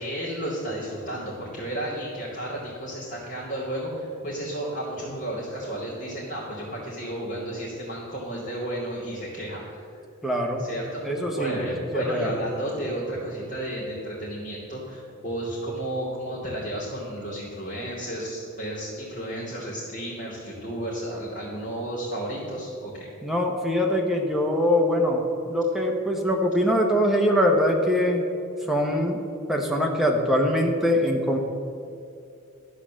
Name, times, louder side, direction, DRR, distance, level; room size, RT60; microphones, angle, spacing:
voice 1, 0.0-9.8 10.6-11.0 11.3-23.1, right 1 dB, 35° left, -11 dB, 3.0 m, -32 dB
voice 2, 10.2-10.7 11.0-11.6 11.9-12.4 23.2-28.3 28.7-29.2 29.5-31.4, equal, ahead, 0 dB, 1.0 m, -23 dB
12.5 x 4.9 x 7.5 m, 2.5 s
head